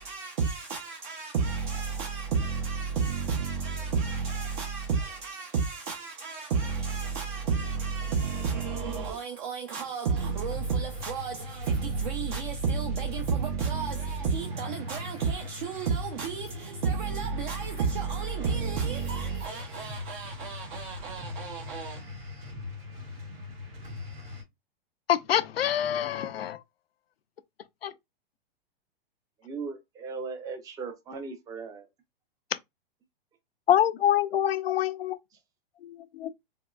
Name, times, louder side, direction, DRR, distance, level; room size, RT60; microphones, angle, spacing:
voice 1, 0.0-22.0, right 5 dB, 55° right, 0.6 m, -31 dB
sound 1, 10.1-24.4, left 2 dB, 85° right, 1.9 m, -41 dB
voice 2, 25.1-26.6 27.8-27.9 33.7-35.2 36.2-36.3, left 11 dB, 85° left, 0.5 m, -25 dB
voice 3, 29.4-31.8, right 4 dB, 10° right, 0.4 m, -38 dB
3.5 x 2.2 x 2.2 m
hypercardioid pair, 120°, 29 cm